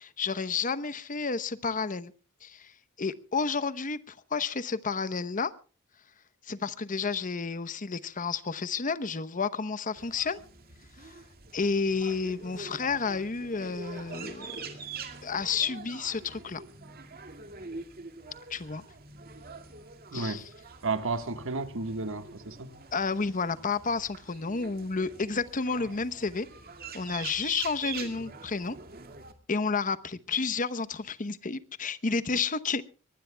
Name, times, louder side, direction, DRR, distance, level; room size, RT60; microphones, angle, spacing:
voice 1, 0.0-2.1 2.4-2.7 3.0-5.5 6.5-10.4 11.0-11.2 11.5-14.8 15.2-16.6 18.5-18.8 20.1-20.5 22.9-26.5 26.9-28.8 29.5-32.8, left 4 dB, 40° left, 0.9 m, -31 dB
sound 1, 10.0-29.3, right 4 dB, 45° right, 2.2 m, -45 dB
voice 2, 20.1-20.4 20.8-22.7, right 3 dB, 65° right, 1.5 m, -32 dB
23.5 x 19.5 x 2.3 m
head